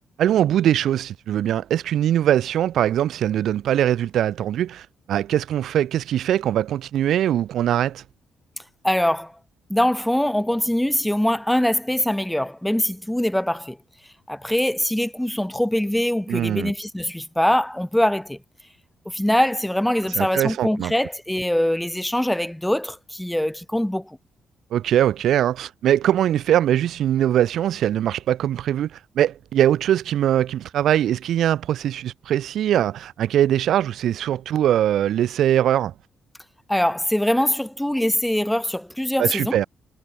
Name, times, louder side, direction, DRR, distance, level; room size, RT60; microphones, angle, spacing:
voice 1, 0.2-8.0 16.3-16.7 20.1-20.9 24.7-35.9 39.2-39.7, right 11 dB, 75° right, 4.6 m, -21 dB
voice 2, 8.8-9.3 9.7-13.8 14.3-18.4 19.1-24.2 36.7-39.6, left 1 dB, 5° left, 5.9 m, -23 dB
cardioid pair, 90°, 0 cm